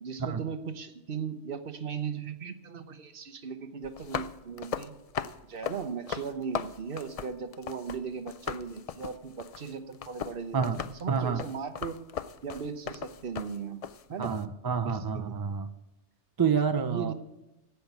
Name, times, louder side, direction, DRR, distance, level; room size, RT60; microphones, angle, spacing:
voice 1, 0.0-4.9 5.4-10.7 11.0-12.0 12.4-13.8 14.1-14.3 14.8-15.3 16.8-17.1, right 6 dB, 55° right, 9 dB, 1.0 m, -37 dB
sound 1, 3.8-8.0 8.3-14.4, left 8 dB, 65° left, 0.3 m, -38 dB
voice 2, 11.1-11.4 14.2-15.7 16.4-17.1, right 6 dB, 35° right, 10 dB, 0.4 m, -28 dB
15.5 x 5.8 x 8.1 m, 0.99 s
omnidirectional pair, 1.2 m